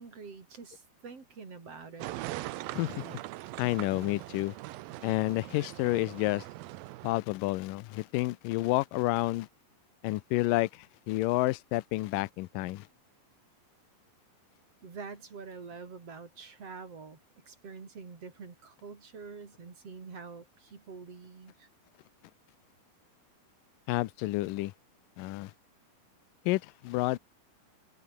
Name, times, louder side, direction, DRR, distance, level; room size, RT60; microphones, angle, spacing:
voice 1, 0.0-2.1 14.8-17.2 17.5-21.7, right 5 dB, 45° right, 4.9 m, -46 dB
sound 1, 2.0-7.2, right 17 dB, 85° right, 2.6 m, -41 dB
voice 2, 2.7-3.2 3.6-4.6 5.0-6.4 7.0-9.5 10.0-12.9 23.9-24.7 25.2-25.5 26.5-27.2, left 19 dB, 75° left, 2.3 m, -30 dB
omnidirectional pair, 4.1 m